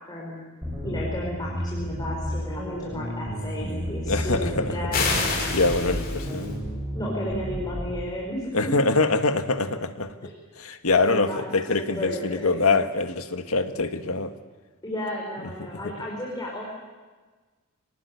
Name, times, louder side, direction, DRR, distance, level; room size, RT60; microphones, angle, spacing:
voice 1, 0.1-0.5 0.8-5.5 6.9-8.8 10.2-10.3 10.9-12.7 14.8-16.8, left 1 dB, 20° left, -4 dB, 5.3 m, -33 dB
sound 1, 0.6-8.0, equal, 10° right, 7.3 m, -32 dB
voice 2, 4.1-4.9 5.5-6.5 8.5-10.2 10.6-14.3 15.8-15.9, left 3 dB, 90° left, 7 dB, 1.8 m, -24 dB
sound 2, 4.9-6.5, left 4 dB, 45° left, 5.9 m, -28 dB
sound 3, 5.2-7.4, left 4 dB, 45° right, 7.9 m, -43 dB
26.5 x 19.5 x 9.9 m, 1.4 s
head